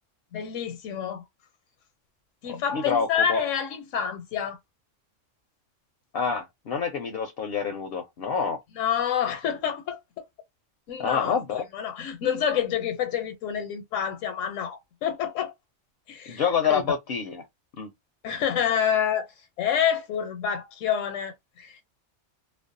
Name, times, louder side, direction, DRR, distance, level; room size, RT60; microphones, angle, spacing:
voice 1, 0.3-1.2 2.4-4.6 8.7-10.0 10.9-11.4 11.7-15.5 16.1-16.8 18.2-19.3 19.6-21.8, left 8 dB, 80° left, 1.0 m, -28 dB
voice 2, 2.7-3.4 6.1-8.6 11.0-11.6 16.3-17.4 17.8-17.9, left 6 dB, 65° left, 0.6 m, -27 dB
2.5 x 2.1 x 2.5 m
omnidirectional pair, 1.3 m